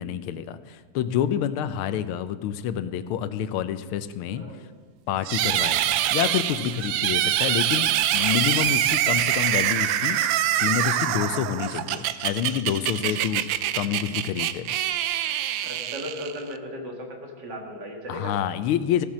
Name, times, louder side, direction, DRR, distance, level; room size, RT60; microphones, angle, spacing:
voice 1, 0.0-4.4 5.1-13.4 13.7-14.7 18.1-19.1, left 9 dB, 90° left, 13 dB, 1.5 m, -28 dB
voice 2, 4.3-4.7 15.6-18.4, equal, 55° right, 1 dB, 2.4 m, -36 dB
sound 1, 5.2-16.6, right 12 dB, 75° right, 1.2 m, -25 dB
16.0 x 7.2 x 6.3 m, 1.4 s
omnidirectional pair, 2.3 m